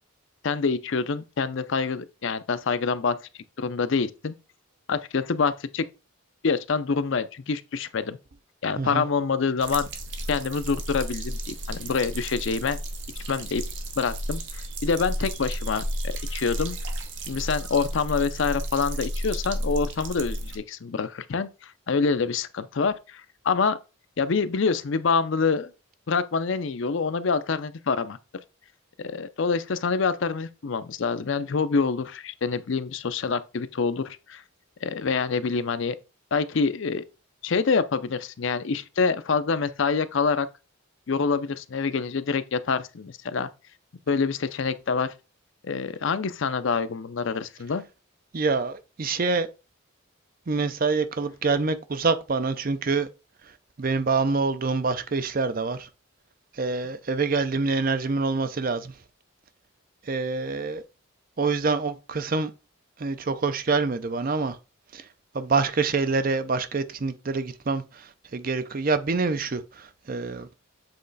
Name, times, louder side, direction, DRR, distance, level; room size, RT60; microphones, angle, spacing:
voice 1, 0.4-3.2 3.6-4.3 4.9-5.9 6.4-8.2 8.6-9.9 10.3-12.8 13.3-13.6 14.0-16.8 17.3-23.8 24.2-25.7 26.1-28.2 29.0-34.4 34.8-36.0 36.3-37.0 37.4-40.5 41.1-43.5 44.1-45.1 45.6-47.8, left 5 dB, 60° left, 0.5 m, -26 dB
sound 1, 9.6-20.6, equal, 60° right, 1.0 m, -32 dB
voice 2, 48.3-49.5 50.5-53.1 53.4-53.5 53.8-55.9 56.5-58.9 60.0-60.8 61.4-62.5 63.0-64.6 64.9-65.1 65.3-70.5, right 4 dB, 40° right, 0.5 m, -26 dB
7.7 x 3.1 x 4.0 m
head